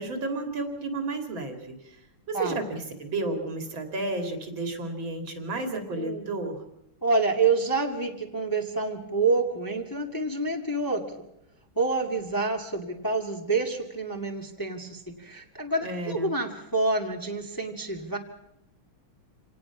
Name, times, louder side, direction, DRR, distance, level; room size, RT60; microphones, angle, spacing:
voice 1, 0.0-1.8 2.3-6.6 15.8-16.3, right 2 dB, 60° right, 5 dB, 3.4 m, -32 dB
voice 2, 5.9-6.3 7.0-11.0 11.8-18.2, right 3 dB, 10° left, 2 dB, 1.8 m, -27 dB
27.0 x 18.5 x 6.0 m, 0.83 s
omnidirectional pair, 2.4 m